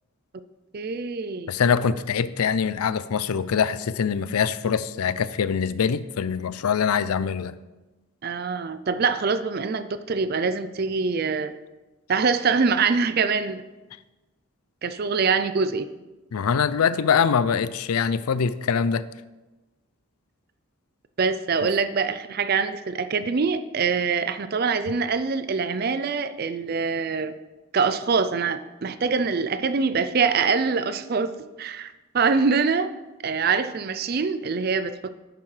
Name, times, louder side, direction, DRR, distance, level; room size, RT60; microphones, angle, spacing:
voice 1, 0.7-1.5 8.2-11.5 12.1-13.6 14.8-15.9 21.2-27.3 27.7-32.9 33.2-35.1, right 5 dB, 45° right, 12 dB, 0.4 m, -24 dB
voice 2, 1.5-7.5 16.3-19.0, left 6 dB, 85° left, 15 dB, 0.4 m, -23 dB
10.5 x 9.2 x 3.3 m, 1.1 s
head